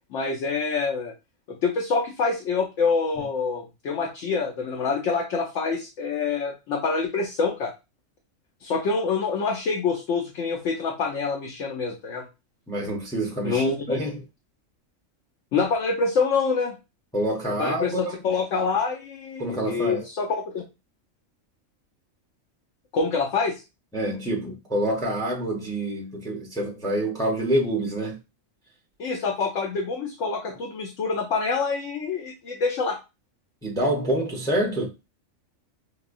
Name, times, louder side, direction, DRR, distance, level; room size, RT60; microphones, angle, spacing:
voice 1, 0.1-1.1 1.5-7.7 8.6-12.3 13.4-14.0 15.5-16.8 17.6-17.9 18.2-20.6 22.9-23.6 29.0-33.0, left 4 dB, 70° left, 1.0 m, -26 dB
voice 2, 12.7-14.2 17.1-18.2 19.4-20.1 23.9-28.2 33.6-34.9, right 1 dB, 5° left, 0.7 m, -27 dB
4.9 x 2.2 x 2.5 m
omnidirectional pair, 1.4 m